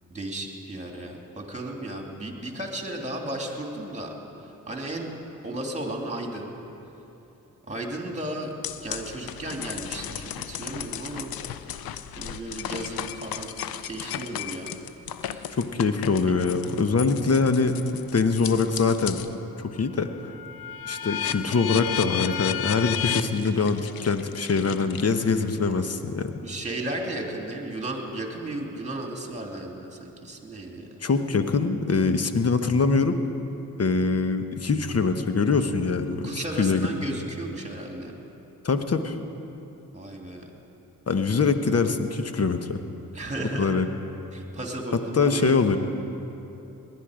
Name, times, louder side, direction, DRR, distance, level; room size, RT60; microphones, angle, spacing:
voice 1, 0.1-4.1 4.4-5.1 5.4-6.5 7.7-8.5 8.8-11.3 12.2-13.5 13.8-14.8 15.2-15.6 26.4-30.9 36.2-38.2 39.9-40.5 43.1-43.8 44.3-45.8, right 1 dB, 20° right, 1 dB, 2.7 m, -34 dB
sound 1, 8.6-19.3 19.8-25.4, left 9 dB, 75° left, 0.6 m, -34 dB
voice 2, 15.5-17.7 18.1-19.2 19.6-20.1 20.8-26.4 31.0-33.2 33.8-36.9 38.6-39.2 41.1-42.8 43.6-43.9 45.1-45.8, left 4 dB, 45° left, 8 dB, 1.1 m, -23 dB
19.0 x 11.0 x 5.0 m, 3.0 s
supercardioid pair, 50°, 36 cm